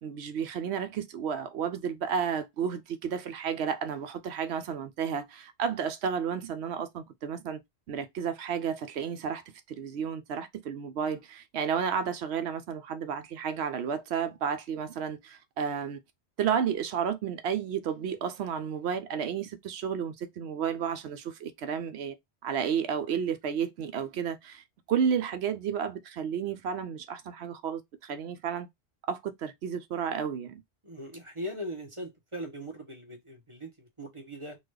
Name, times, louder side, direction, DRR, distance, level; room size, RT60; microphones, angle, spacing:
voice 1, 0.0-7.6 7.9-9.4 9.7-16.0 16.4-22.2 22.4-28.7 29.1-30.5, right 7 dB, 75° right, 0.9 m, -32 dB
voice 2, 30.8-34.6, equal, 30° right, 1.1 m, -40 dB
3.9 x 2.5 x 3.2 m
omnidirectional pair, 1.1 m